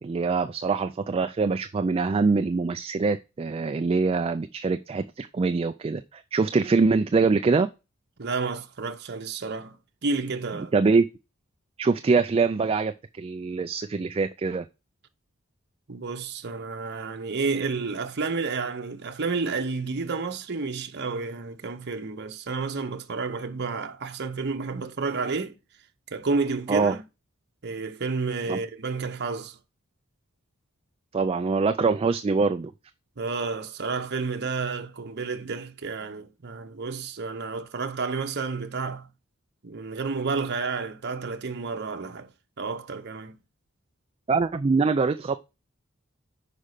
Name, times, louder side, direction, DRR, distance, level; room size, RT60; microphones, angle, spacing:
voice 1, 0.0-7.7 10.7-11.0 11.8-14.7 26.7-27.0 28.5-28.6 31.1-32.7 44.3-45.4, right 4 dB, 25° right, 0.3 m, -24 dB
voice 2, 8.2-10.7 15.9-25.6 26.1-27.0 27.6-29.6 33.2-39.1 39.6-42.3 42.6-43.4, right 4 dB, 55° right, 0.9 m, -30 dB
5.4 x 5.0 x 6.5 m
head